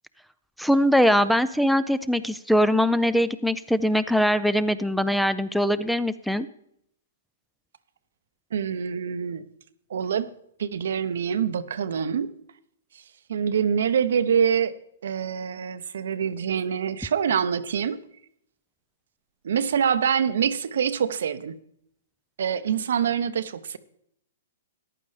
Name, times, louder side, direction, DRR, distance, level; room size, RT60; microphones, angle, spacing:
voice 1, 0.6-6.5, equal, ahead, 0.4 m, -22 dB
voice 2, 8.5-9.4 9.9-10.3 10.6-12.3 13.3-14.7 15.0-18.0 19.4-21.5 22.4-23.8, right 7 dB, 70° right, 0.7 m, -25 dB
14.5 x 11.0 x 3.3 m
hypercardioid pair, 135°, 0 cm